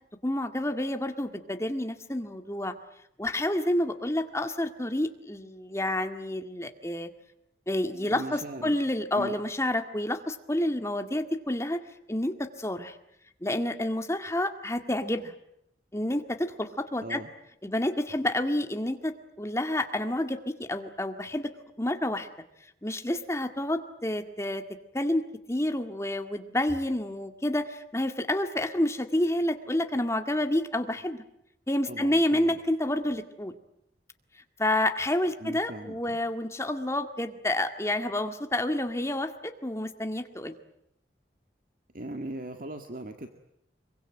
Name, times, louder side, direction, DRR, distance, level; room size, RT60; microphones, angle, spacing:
voice 1, 0.2-2.7 3.2-7.1 7.7-11.8 12.1-13.0 13.4-15.3 15.9-17.2 17.6-21.5 21.8-22.3 22.8-24.6 24.9-25.2 25.5-31.2 31.7-33.5 34.6-40.5, left 1 dB, 15° left, 7 dB, 2.0 m, -29 dB
voice 2, 7.9-8.8 9.1-9.4 17.0-17.3 31.8-32.6 35.4-36.2 41.9-43.3, right 1 dB, 50° right, 6 dB, 1.9 m, -39 dB
26.0 x 23.5 x 9.1 m, 0.76 s
head